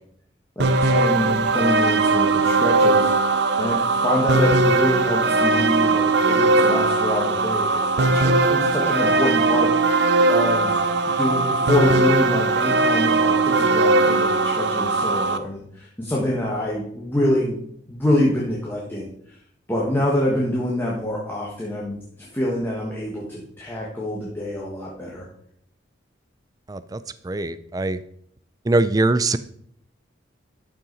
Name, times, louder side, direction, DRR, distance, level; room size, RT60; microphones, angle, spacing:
voice 1, 0.5-3.1 3.6-10.0 10.3-10.8 11.1-17.6 17.9-19.4 19.7-25.2, left 1 dB, 10° left, -5 dB, 1.4 m, -25 dB
sound 1, 0.6-15.4, right 3 dB, 65° right, 0.6 m, -19 dB
voice 2, 26.7-28.0 28.6-29.4, right 2 dB, 20° right, 14 dB, 0.3 m, -22 dB
12.0 x 5.7 x 4.0 m, 0.69 s
head